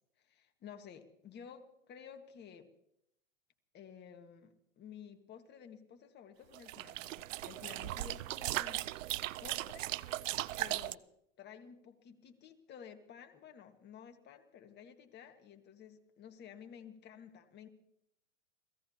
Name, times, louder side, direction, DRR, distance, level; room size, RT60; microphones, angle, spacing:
voice 1, 0.2-2.7 3.7-9.1 9.4-9.9 10.6-11.0 11.4-17.7, left 8 dB, 25° left, 6 dB, 1.5 m, -53 dB
sound 1, 6.5-10.9, right 15 dB, 70° right, 0.6 m, -38 dB
29.5 x 17.0 x 2.8 m, 0.78 s
hypercardioid pair, 120°, 40 cm